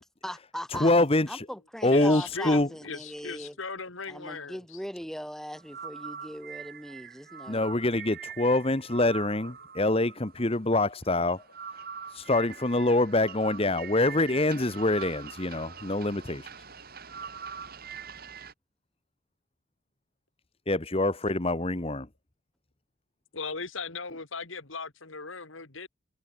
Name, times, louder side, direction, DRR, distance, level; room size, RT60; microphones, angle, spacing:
voice 1, 0.0-0.9 1.3-3.6 4.1-7.7, equal, ahead, 6.4 m, -40 dB
voice 2, 0.7-1.5 1.8-2.7 7.5-11.4 12.1-16.5 20.7-22.1, left 2 dB, 30° left, 1.2 m, -25 dB
voice 3, 1.9-4.6 23.3-25.9, left 4 dB, 80° left, 2.7 m, -38 dB
sound 1, 5.6-18.5, right 6 dB, 50° right, 3.9 m, -43 dB
head